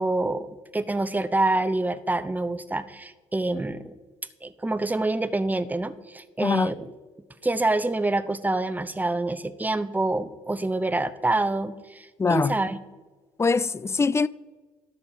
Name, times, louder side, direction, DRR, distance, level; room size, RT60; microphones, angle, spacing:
voice 1, 0.0-3.9 4.4-6.9 7.4-12.8, right 2 dB, 10° right, 0.7 m, -26 dB
voice 2, 6.4-6.7 12.2-12.5 13.4-14.3, left 4 dB, 20° left, 0.4 m, -22 dB
11.5 x 4.2 x 6.8 m
hypercardioid pair, 50°, 15 cm